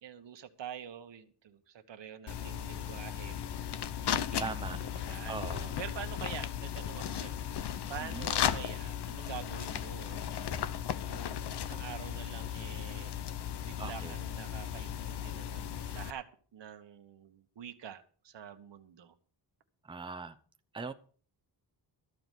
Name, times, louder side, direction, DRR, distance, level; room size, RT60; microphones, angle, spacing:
voice 1, 0.0-3.3 4.0-10.3 11.1-13.1 13.6-19.2, right 9 dB, 80° right, 8 dB, 1.5 m, -46 dB
sound 1, 2.3-16.1, left 9 dB, 70° left, 0.8 m, -36 dB
voice 2, 4.4-4.8 5.3-5.7 8.0-8.3 13.8-14.2 19.8-20.4 20.7-20.9, right 4 dB, 10° right, 7 dB, 0.8 m, -40 dB
14.0 x 5.0 x 9.2 m, 0.42 s
wide cardioid pair, 140°, 43 cm